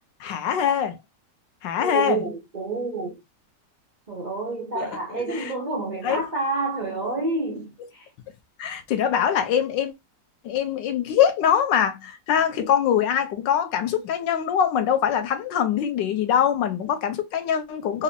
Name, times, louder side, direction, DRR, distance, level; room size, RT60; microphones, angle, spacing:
voice 1, 0.2-1.0 1.6-2.2 4.7-4.9 5.3-5.5 6.0-6.2 8.6-9.9 10.4-18.0, left 9 dB, 85° left, 1.4 m, -23 dB
voice 2, 1.8-3.2 4.1-8.1, right 3 dB, 50° right, 0.5 m, -29 dB
4.1 x 2.5 x 2.7 m
omnidirectional pair, 1.9 m